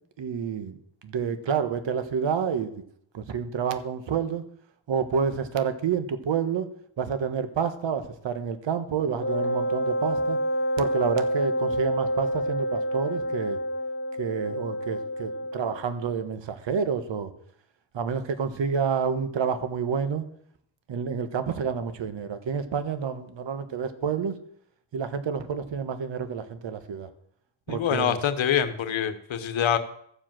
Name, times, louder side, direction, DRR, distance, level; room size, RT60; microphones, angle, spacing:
voice 1, 0.2-0.8 1.0-2.7 3.1-4.4 4.9-6.7 7.0-10.4 10.8-13.6 14.2-17.3 17.9-20.2 20.9-24.4 24.9-27.1 27.7-28.2, right 6 dB, 60° right, 10 dB, 1.4 m, -29 dB
Wind instrument woodwind instrument, 9.2-15.8, equal, 25° left, 1.1 m, -28 dB
voice 2, 27.7-29.8, left 9 dB, 65° left, 10 dB, 1.3 m, -25 dB
14.0 x 4.9 x 7.6 m, 0.68 s
cardioid pair, 75°, 49 cm